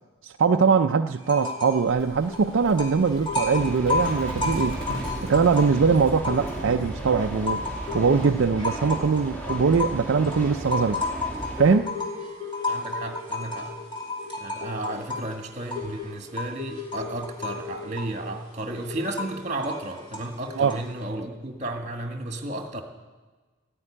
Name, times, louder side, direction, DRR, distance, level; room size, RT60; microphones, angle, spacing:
voice 1, 0.2-4.8 5.2-7.7 7.9-11.0 11.6-11.9 20.6-20.8, right 5 dB, 65° right, 6 dB, 0.4 m, -22 dB
sound 1, 1.2-1.9 2.1-6.8 7.2-21.0, left 3 dB, 25° left, 2.8 m, -33 dB
Livestock farm animals working animals, 1.9-8.5, equal, 80° left, 4.4 m, -38 dB
sound 2, 3.6-11.8, right 1 dB, 10° left, 2.4 m, -35 dB
voice 2, 12.7-13.7 14.4-22.8, right 1 dB, 35° right, 4 dB, 1.7 m, -33 dB
15.0 x 9.7 x 9.9 m, 1.3 s
head